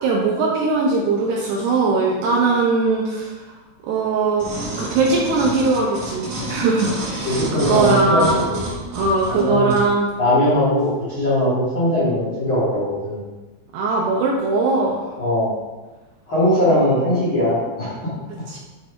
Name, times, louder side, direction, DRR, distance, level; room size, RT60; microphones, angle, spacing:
voice 1, 0.0-3.5 3.8-4.5 4.8-8.4 8.9-10.1 13.7-15.0 18.5-18.6, right 3 dB, 80° right, -2 dB, 2.5 m, -20 dB
sound 1, 4.4-9.9 10.5-10.6, right 1 dB, 45° right, 2.9 m, -29 dB
voice 2, 7.2-8.6 9.3-9.8 10.2-13.2 15.2-15.5 16.3-17.9, left 1 dB, 80° left, -11 dB, 1.1 m, -20 dB
10.0 x 3.5 x 3.6 m, 1.2 s
omnidirectional pair, 5.5 m